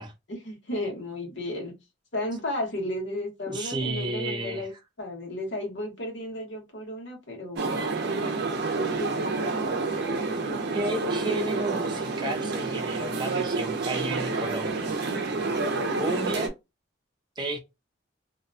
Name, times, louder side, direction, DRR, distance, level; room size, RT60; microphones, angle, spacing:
voice 1, 0.3-1.7 2.1-4.7 5.0-7.9 8.7-9.5, left 1 dB, 70° left, 1.3 m, -33 dB
voice 2, 3.5-4.7 10.7-15.0 16.0-16.5 17.4-17.6, right 2 dB, 25° right, 0.7 m, -32 dB
sound 1, 7.6-16.5, right 3 dB, 60° right, 0.6 m, -29 dB
2.7 x 2.2 x 2.6 m
head